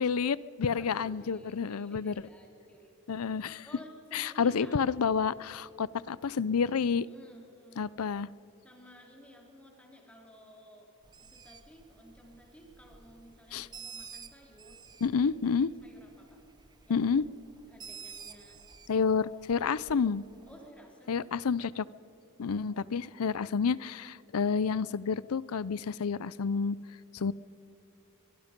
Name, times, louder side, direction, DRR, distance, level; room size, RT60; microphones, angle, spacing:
voice 1, 0.0-2.1 3.1-3.7 4.1-7.1 7.8-8.3 13.5-13.7 15.0-15.7 16.9-17.2 18.9-20.2 21.1-21.9 22.4-26.8 27.1-27.3, left 6 dB, 80° left, 20 dB, 0.5 m, -29 dB
voice 2, 0.6-2.9 3.6-4.8 7.0-7.9 8.6-10.9 11.3-15.5 15.8-16.4 16.9-17.1 17.7-18.6 20.5-21.3 22.5-23.4, equal, 5° left, 0 dB, 3.5 m, -54 dB
Bird, 11.0-20.7, right 6 dB, 20° right, 0.7 m, -51 dB
23.0 x 22.5 x 5.3 m, 2.9 s
head